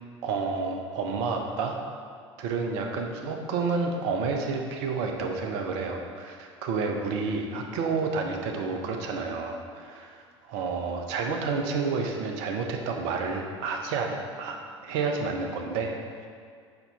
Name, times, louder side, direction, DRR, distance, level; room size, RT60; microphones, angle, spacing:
voice 1, 0.2-1.8 2.4-14.6 14.8-16.3, right 4 dB, 55° right, 2 dB, 0.9 m, -30 dB
6.9 x 5.6 x 4.1 m, 2.1 s
figure-of-eight pair, 65°, 15 cm